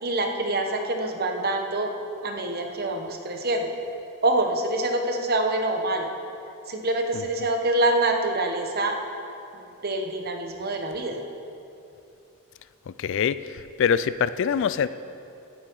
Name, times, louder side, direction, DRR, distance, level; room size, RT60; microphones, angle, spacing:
voice 1, 0.0-1.9 2.2-3.7 4.2-6.1 6.7-9.0 9.8-11.2, right 2 dB, 45° right, 4 dB, 1.1 m, -25 dB
voice 2, 13.0-14.9, left 7 dB, 55° left, 15 dB, 0.3 m, -24 dB
16.5 x 8.6 x 4.7 m, 2.8 s
head